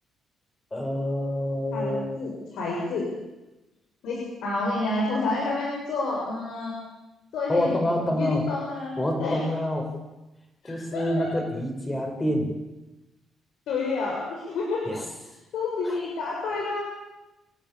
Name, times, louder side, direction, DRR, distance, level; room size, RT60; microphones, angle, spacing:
voice 1, 0.7-2.2 7.5-8.5 9.0-10.0 10.6-12.6 14.8-15.1 15.8-16.0, left 1 dB, 20° left, 2 dB, 6.4 m, -27 dB
voice 2, 1.7-3.0 4.0-6.8 7.3-7.7 8.1-8.9 9.2-9.4 10.6-11.3 13.7-14.9 15.5-16.8, left 3 dB, 80° left, -3 dB, 6.9 m, -29 dB
28.0 x 13.0 x 8.9 m, 1.0 s
cardioid pair, 90°, 0 cm